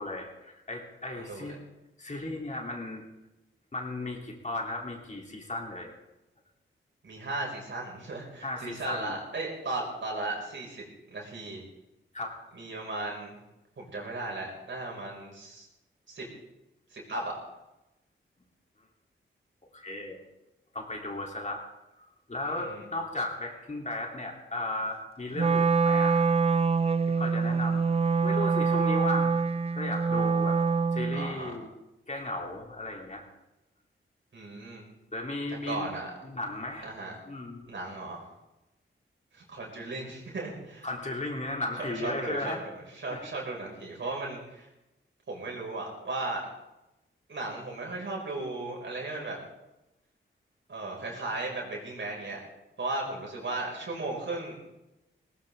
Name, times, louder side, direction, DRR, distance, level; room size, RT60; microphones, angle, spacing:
voice 1, 0.0-1.6 2.0-3.0 3.7-5.9 8.4-9.2 12.1-12.4 19.7-20.2 20.7-21.6 22.3-26.2 27.1-27.8 28.2-29.4 29.7-30.6 30.9-31.7 32.1-33.2 35.1-35.9 36.2-36.9 37.3-37.7 40.8-42.6 43.1-43.3, left 2 dB, 35° left, 0 dB, 3.5 m, -35 dB
voice 2, 1.2-1.6 7.0-10.8 11.1-11.6 12.5-13.3 13.8-15.7 16.1-16.3 16.9-17.3 22.5-22.9 31.1-31.6 34.3-34.8 35.7-36.1 36.8-37.1 37.7-38.3 39.3-40.9 41.8-44.7 45.3-46.4 47.3-49.4 50.7-52.4 52.8-54.7, right 2 dB, 65° right, -2 dB, 6.1 m, -36 dB
Wind instrument woodwind instrument, 25.4-31.4, right 5 dB, 30° right, 0.4 m, -25 dB
18.5 x 18.0 x 3.8 m, 0.96 s
cardioid pair, 70°, 21 cm